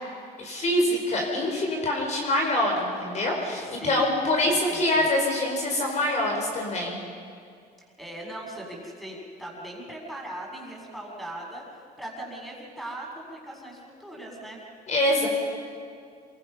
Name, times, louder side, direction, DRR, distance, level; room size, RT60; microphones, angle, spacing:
voice 1, 0.4-7.0 14.9-15.3, left 1 dB, 45° left, 0 dB, 4.9 m, -25 dB
voice 2, 3.6-5.1 8.0-14.6, right 1 dB, ahead, -2 dB, 6.9 m, -39 dB
28.0 x 24.0 x 5.8 m, 2.3 s
cardioid pair, 110°, 17 cm